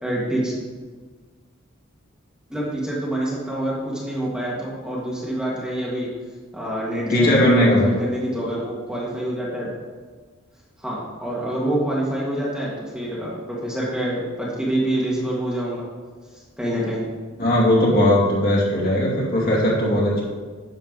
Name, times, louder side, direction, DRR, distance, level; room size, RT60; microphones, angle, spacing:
voice 1, 0.0-0.5 2.5-6.1 6.5-9.7 10.8-15.9 16.3-17.0, right 1 dB, 5° right, -6 dB, 1.7 m, -26 dB
voice 2, 7.1-7.8 17.4-20.2, left 1 dB, 45° left, -5 dB, 2.7 m, -18 dB
10.5 x 7.0 x 4.0 m, 1.5 s
head